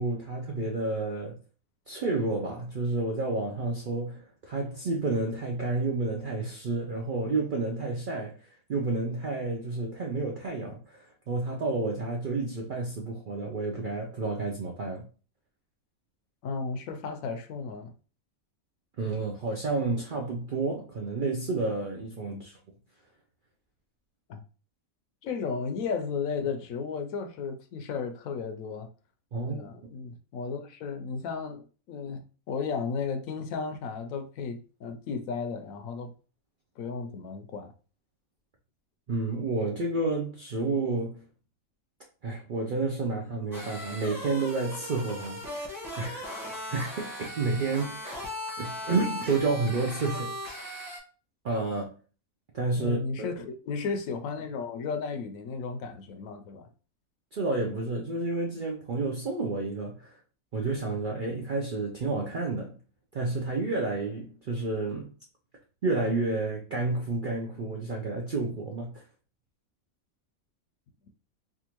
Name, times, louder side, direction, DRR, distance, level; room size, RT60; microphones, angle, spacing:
voice 1, 0.0-1.4 1.9-15.1 19.0-22.5 29.3-29.6 39.1-41.2 42.2-48.0 48.6-50.3 51.4-51.9 52.5-53.4 57.3-60.2 60.5-62.8 63.1-65.1 65.8-69.0, right 3 dB, 65° right, 0.5 m, -30 dB
voice 2, 16.4-17.9 22.3-22.4 24.3-24.4 25.2-28.9 29.5-36.1 36.8-37.7 52.8-56.7, left 5 dB, 75° left, 1.0 m, -34 dB
sound 1, 43.5-51.0, left 1 dB, ahead, 0.9 m, -38 dB
3.5 x 2.5 x 2.9 m
omnidirectional pair, 1.5 m